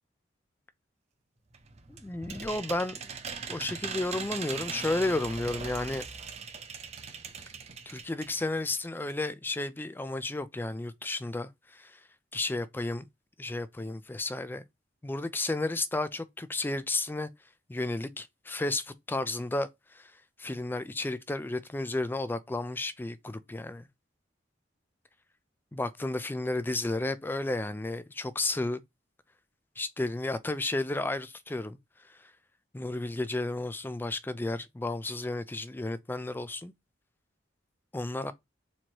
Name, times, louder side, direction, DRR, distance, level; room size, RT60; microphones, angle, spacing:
sound 1, 1.5-8.4 8.8-8.9 9.1-9.2, right 5 dB, 35° right, 0.6 m, -40 dB
voice 1, 1.9-3.1 3.5-6.0 7.9-11.9 12.3-13.0 13.4-14.6 15.0-17.3 17.7-19.7 20.0-20.1 20.4-23.9 25.7-28.8 29.8-31.8 32.7-36.7 37.9-38.3, left 2 dB, 10° left, 0.3 m, -32 dB
4.3 x 3.0 x 2.9 m
head